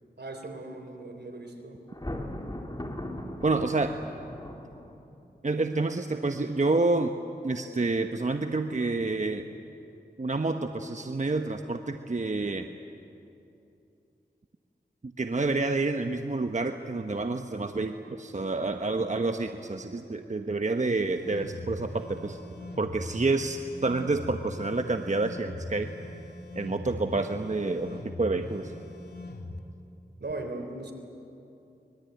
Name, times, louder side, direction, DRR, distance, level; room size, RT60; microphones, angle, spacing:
voice 1, 0.2-1.8 30.2-30.9, right 2 dB, 75° right, 5 dB, 3.7 m, -38 dB
Thunder, 1.9-5.2, left 1 dB, 25° left, 3.1 m, -38 dB
voice 2, 3.4-4.0 5.4-7.1 7.4-9.5 10.2-12.7 15.0-22.4 22.8-25.9 26.5-28.7, right 3 dB, 45° right, 6 dB, 1.1 m, -28 dB
sound 1, 21.0-29.6, left 2 dB, 65° left, 2.6 m, -41 dB
24.5 x 22.0 x 9.3 m, 2.7 s
cardioid pair, 40°, 18 cm